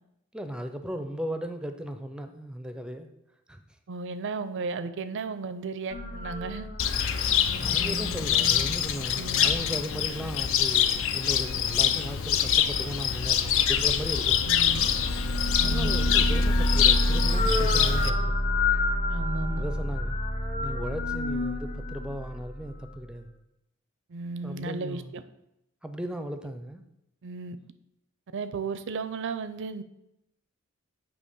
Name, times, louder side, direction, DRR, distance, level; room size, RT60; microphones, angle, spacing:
voice 1, 0.3-3.1 3.5-3.6 7.6-14.6 15.6-18.4 19.5-20.2 20.6-23.3 24.4-25.1 25.8-26.8, equal, 5° right, 7 dB, 0.5 m, -36 dB
voice 2, 3.9-6.7 9.1-9.5 14.5-14.9 15.6-15.9 19.1-19.6 24.1-25.2 27.2-27.6 28.3-29.8, right 4 dB, 60° right, 12 dB, 0.5 m, -34 dB
sound 1, 5.9-9.5 13.7-23.0, left 1 dB, 30° left, 0.8 m, -28 dB
Cricket, 6.8-18.1, left 9 dB, 65° left, 0.4 m, -25 dB
8.5 x 2.9 x 5.4 m, 0.85 s
head